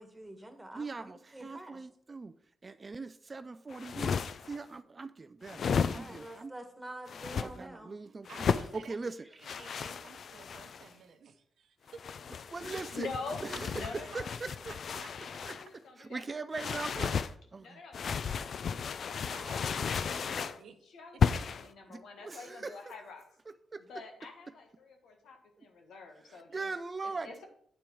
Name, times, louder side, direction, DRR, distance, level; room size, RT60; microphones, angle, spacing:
voice 1, 0.0-1.8 5.9-7.9, right 1 dB, 10° right, 6 dB, 1.7 m, -47 dB
voice 2, 0.7-2.3 2.6-4.2 4.4-5.7 5.9-6.5 7.4-9.2 12.5-13.1 13.5-14.6 15.4-15.6 16.0-17.2 17.5-17.8 21.9-22.8 23.5-23.8 26.3-27.3, right 3 dB, 40° right, 12 dB, 0.4 m, -41 dB
sound 1, 3.7-4.6 5.4-6.3 7.1-7.5 8.3-8.7 9.4-10.9 11.9-15.7 16.5-17.3 17.9-20.6 21.2-21.7, left 6 dB, 65° left, 0.4 m, -34 dB
voice 3, 8.0-9.0 9.3-12.1 13.3-13.4 14.4-15.1 19.3-20.8 21.4-21.5, right 6 dB, 75° right, 8 dB, 0.9 m, -53 dB
voice 4, 12.7-13.5 13.7-14.3 14.9-16.3 17.6-20.5 20.9-23.3 23.9-26.7 27.0-27.5, left 4 dB, 85° left, 4 dB, 1.5 m, -46 dB
8.8 x 4.5 x 5.4 m, 0.66 s
cardioid pair, 65°, 0 cm